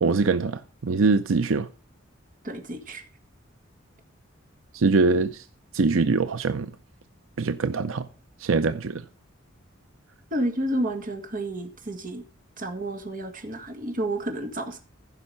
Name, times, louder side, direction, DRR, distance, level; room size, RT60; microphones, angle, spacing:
voice 1, 0.0-1.7 4.7-5.5 5.7-6.7 7.4-8.1 8.4-9.0, right 4 dB, 85° right, 0.6 m, -23 dB
voice 2, 2.4-3.0 10.3-12.2 12.6-14.8, right 1 dB, 45° right, 2.0 m, -30 dB
15.0 x 5.6 x 5.5 m
head